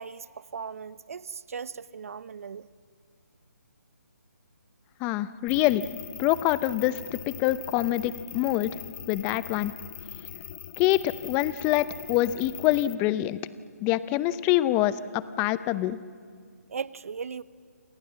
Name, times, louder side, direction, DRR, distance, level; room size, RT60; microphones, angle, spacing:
voice 1, 0.0-2.7 16.7-17.4, right 6 dB, 60° right, 18 dB, 0.9 m, -38 dB
voice 2, 5.0-5.9 6.2-7.0 7.3-8.7 9.1-9.7 10.8-13.4 13.8-16.0, left 15 dB, 20° left, 16 dB, 0.7 m, -25 dB
sound 1, 5.5-12.9, left 10 dB, 35° left, 1.1 m, -42 dB
28.0 x 27.5 x 7.5 m, 2.1 s
figure-of-eight pair, 150°, 9 cm